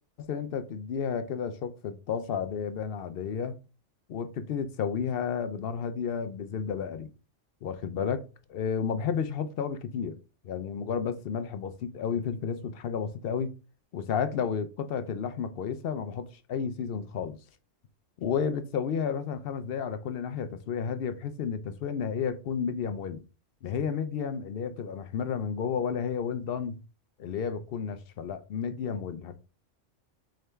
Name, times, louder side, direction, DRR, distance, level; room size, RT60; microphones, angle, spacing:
voice 1, 0.2-3.6 4.1-7.1 7.6-8.2 8.5-10.2 10.4-13.5 13.9-17.4 18.2-23.2 23.6-26.8 27.2-29.3, left 7 dB, 60° left, 0.6 m, -32 dB
3.7 x 3.2 x 3.3 m
omnidirectional pair, 1.3 m